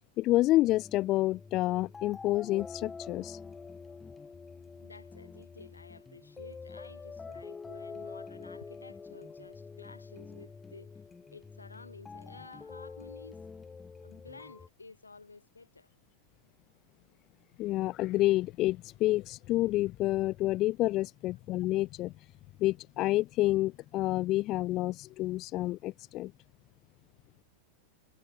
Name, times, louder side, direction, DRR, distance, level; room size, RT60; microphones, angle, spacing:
voice 1, 0.2-3.4 17.6-22.1 22.6-26.3, left 17 dB, 35° left, 0.5 m, -29 dB
sound 1, 0.7-14.7, left 4 dB, 15° left, 1.8 m, -46 dB
voice 2, 4.8-11.0 11.3-13.4 14.0-15.9, left 3 dB, 80° left, 4.0 m, -52 dB
figure-of-eight pair, 90°, 0 cm